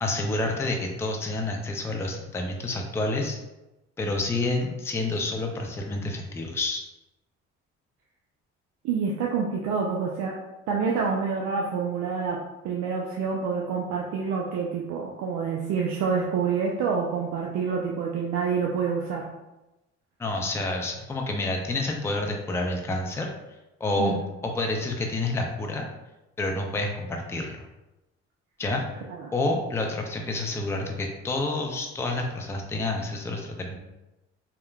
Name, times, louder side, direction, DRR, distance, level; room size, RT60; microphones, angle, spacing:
voice 1, 0.0-3.4 4.0-6.8 20.2-23.3 23.8-24.1 24.4-25.9 26.4-27.6 28.6-28.8 29.3-33.8, left 2 dB, 10° left, 2 dB, 0.4 m, -28 dB
voice 2, 8.8-10.4 10.7-12.4 12.6-19.2 24.0-24.2 29.1-29.3, right 5 dB, 75° right, -2 dB, 0.5 m, -27 dB
3.2 x 2.1 x 2.3 m, 0.99 s
supercardioid pair, 70°, 29 cm